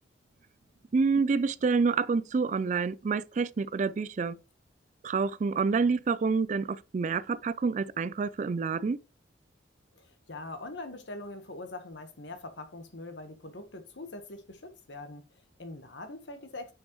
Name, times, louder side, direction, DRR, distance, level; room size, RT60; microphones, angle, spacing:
voice 1, 0.9-4.4 5.0-9.0, right 4 dB, 40° right, 0.3 m, -28 dB
voice 2, 10.0-16.7, left 2 dB, 65° left, 1.3 m, -43 dB
9.3 x 5.3 x 3.1 m
head